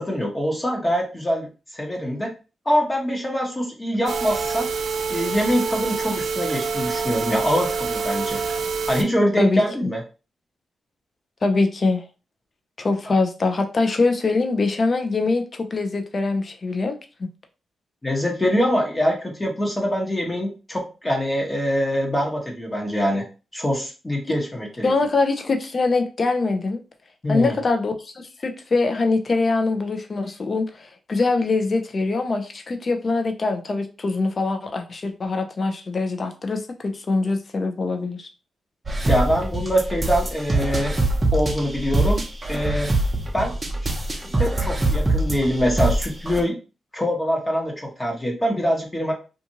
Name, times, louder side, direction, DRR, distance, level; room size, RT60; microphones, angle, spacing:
voice 1, 0.0-1.5 1.7-2.3 2.6-4.7 5.1-8.4 8.9-10.0 13.1-13.2 18.0-23.3 23.5-24.9 27.2-27.6 39.1-40.9 41.3-42.2 42.5-42.9 43.3-43.5 44.4-46.6 46.9-49.1, equal, 25° left, -1 dB, 1.1 m, -24 dB
sound 1, 4.1-9.0, right 5 dB, 75° right, 0.4 m, -26 dB
voice 2, 9.4-9.9 11.4-12.0 12.8-17.3 24.8-26.8 27.3-28.1 28.4-38.3, left 3 dB, 50° left, 5 dB, 0.6 m, -23 dB
sound 2, 38.9-46.4, right 2 dB, 30° right, 0.7 m, -23 dB
2.5 x 2.5 x 2.9 m, 0.33 s
supercardioid pair, 55°, 0 cm